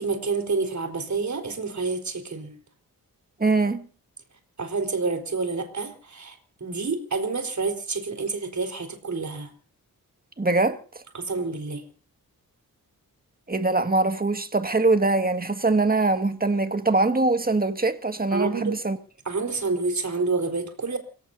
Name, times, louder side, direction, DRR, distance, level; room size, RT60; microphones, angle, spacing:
voice 1, 0.0-2.5 4.6-9.5 11.1-11.8 18.3-18.7 19.2-21.0, right 4 dB, 50° right, 4.5 m, -28 dB
voice 2, 3.4-3.9 10.4-10.8 13.5-19.0, right 3 dB, 25° right, 1.9 m, -22 dB
29.0 x 17.5 x 2.8 m
cardioid pair, 75°, 36 cm